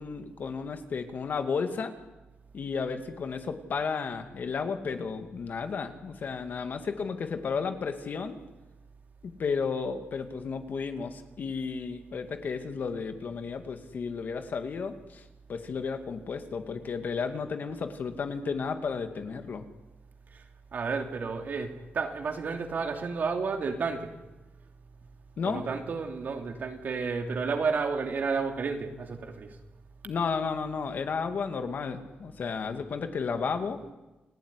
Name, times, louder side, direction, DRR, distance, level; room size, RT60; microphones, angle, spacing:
voice 1, 0.0-1.9 2.5-8.4 9.2-15.2 15.5-19.7 25.4-25.6 30.0-33.8, left 5 dB, 55° left, 7 dB, 2.4 m, -33 dB
voice 2, 20.7-24.1 25.4-29.6, right 4 dB, 50° right, 4 dB, 3.1 m, -31 dB
29.5 x 18.5 x 10.0 m, 1.1 s
wide cardioid pair, 175°, 4 cm